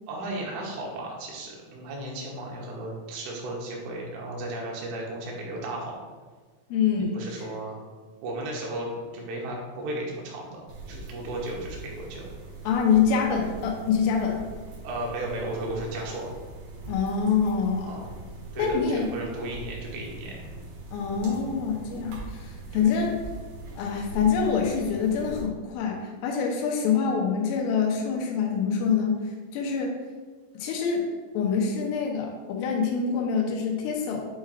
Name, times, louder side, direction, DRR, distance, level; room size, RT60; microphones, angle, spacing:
voice 1, 0.1-6.0 7.1-7.9 8.2-10.6 10.9-12.3 14.8-16.3 17.9-18.1 18.5-20.5 22.7-22.9, right 1 dB, 80° right, -2 dB, 3.6 m, -35 dB
voice 2, 6.7-7.2 12.7-14.5 16.9-18.0 18.6-19.1 20.9-23.1 23.8-29.2 29.5-30.0 30.6-31.0 31.4-34.2, left 6 dB, 90° left, 0 dB, 3.5 m, -25 dB
sound 1, 10.7-25.4, right 2 dB, 60° right, 3.1 m, -41 dB
8.9 x 4.3 x 2.4 m, 1.4 s
omnidirectional pair, 5.6 m